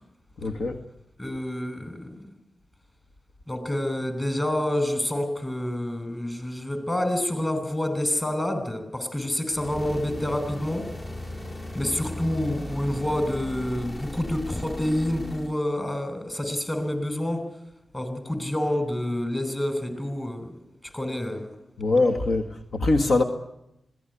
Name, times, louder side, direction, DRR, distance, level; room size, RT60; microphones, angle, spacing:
voice 1, 0.4-0.8 21.8-23.2, left 2 dB, 75° left, 1.5 m, -23 dB
voice 2, 1.2-2.3 3.5-10.9 11.7-17.5 17.9-20.5 20.9-21.5, left 1 dB, 25° left, 6.3 m, -28 dB
sound 1, 9.5-15.6, left 1 dB, 45° left, 3.3 m, -36 dB
21.0 x 17.0 x 9.9 m
cardioid pair, 45°, 0 cm